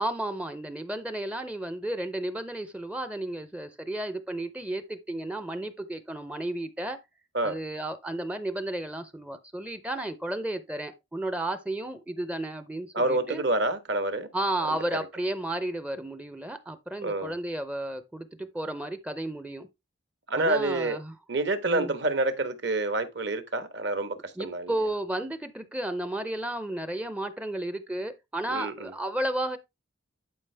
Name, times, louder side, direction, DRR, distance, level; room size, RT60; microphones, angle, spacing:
voice 1, 0.0-7.0 7.4-13.4 14.3-19.7 20.4-21.1 21.7-21.9 24.4-29.6, right 1 dB, 5° right, 0.5 m, -33 dB
voice 2, 12.9-14.3 14.7-14.8 17.0-17.3 20.3-21.0 21.3-24.7 28.5-28.9, right 2 dB, 60° right, 1.3 m, -28 dB
11.0 x 5.0 x 3.3 m
head